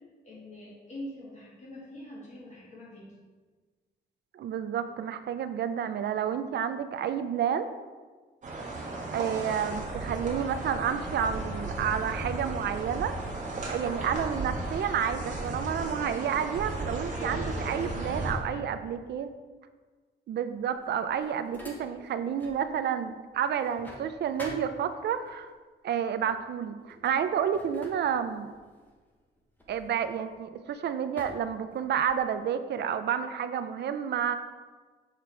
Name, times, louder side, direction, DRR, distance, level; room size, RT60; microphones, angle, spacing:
voice 1, 0.0-3.2 17.1-18.7, left 1 dB, 40° left, -5 dB, 1.9 m, -44 dB
voice 2, 4.3-7.7 9.1-13.1 13.7-19.3 20.3-25.5 25.8-28.5 29.7-34.4, right 8 dB, 60° right, 10 dB, 0.4 m, -30 dB
sound 1, 8.4-18.3, right 2 dB, 40° right, 1.4 m, -35 dB
sound 2, 20.6-22.7 23.0-25.3 26.2-26.4 26.8-30.6 31.2-32.3, equal, 10° left, 0.9 m, -48 dB
6.6 x 3.7 x 4.6 m, 1.4 s
wide cardioid pair, 160°, 19 cm